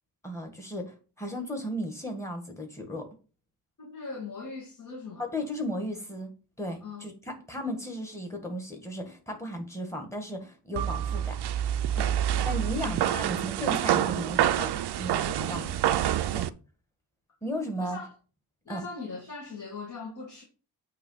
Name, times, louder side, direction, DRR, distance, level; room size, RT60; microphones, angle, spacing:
voice 1, 0.2-3.1 5.2-6.3 6.6-11.4 12.5-15.7 16.3-16.5 17.4-18.0 18.7-18.8, equal, 5° left, 1.8 m, -35 dB
voice 2, 3.8-5.3 6.8-7.1 11.9-13.2 15.6-15.8 17.8-18.1 18.7-20.4, left 4 dB, 45° left, 2.1 m, -41 dB
sound 1, 10.8-16.5, right 11 dB, 75° right, 0.6 m, -27 dB
8.6 x 3.3 x 5.7 m
wide cardioid pair, 140°, 40 cm